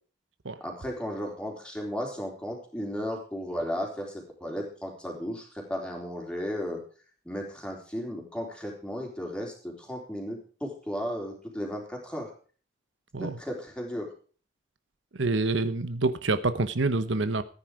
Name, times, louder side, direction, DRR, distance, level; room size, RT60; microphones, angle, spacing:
voice 1, 0.6-6.8 7.2-12.3 13.2-14.1, equal, 5° left, 0 dB, 3.8 m, -35 dB
voice 2, 15.1-17.4, right 3 dB, 80° right, 12 dB, 1.0 m, -27 dB
14.5 x 9.8 x 4.9 m, 0.40 s
head